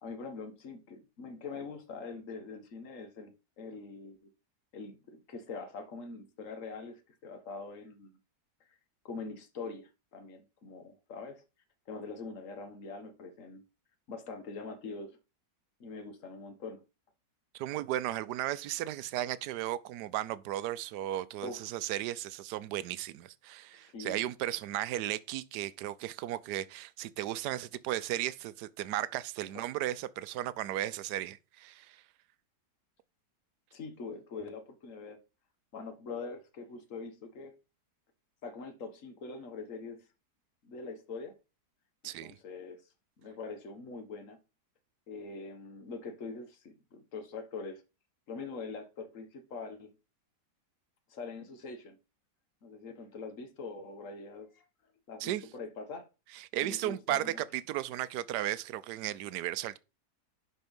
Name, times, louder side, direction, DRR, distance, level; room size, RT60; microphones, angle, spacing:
voice 1, 0.0-4.2 4.7-8.2 9.1-11.4 11.9-13.6 14.1-15.2 15.8-16.8 21.4-21.7 23.7-24.2 29.5-29.7 33.7-35.2 35.7-37.5 38.4-40.1 40.6-41.4 42.2-42.8 43.2-44.4 45.1-47.8 48.3-49.9 51.1-52.0 52.6-54.6 55.1-56.1 56.6-57.4, left 4 dB, 50° left, 1.7 m, -43 dB
voice 2, 17.5-32.0 42.0-42.3 55.2-55.4 56.3-59.8, right 13 dB, 75° right, 1.2 m, -35 dB
11.0 x 4.4 x 5.3 m
omnidirectional pair, 1.8 m